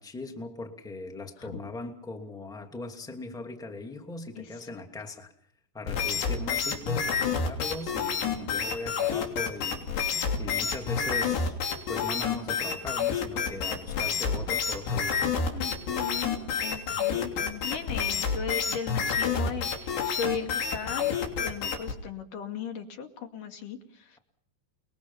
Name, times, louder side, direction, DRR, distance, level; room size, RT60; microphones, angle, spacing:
voice 1, 0.0-5.3 5.7-11.6 11.9-15.4 16.9-17.3, left 2 dB, ahead, 4 dB, 1.6 m, -39 dB
voice 2, 4.4-4.7 15.5-24.2, left 6 dB, 55° left, 5 dB, 3.7 m, -37 dB
sound 1, 5.9-22.0, left 6 dB, 80° left, 5.4 m, -29 dB
29.5 x 22.0 x 5.7 m, 0.63 s
omnidirectional pair, 4.7 m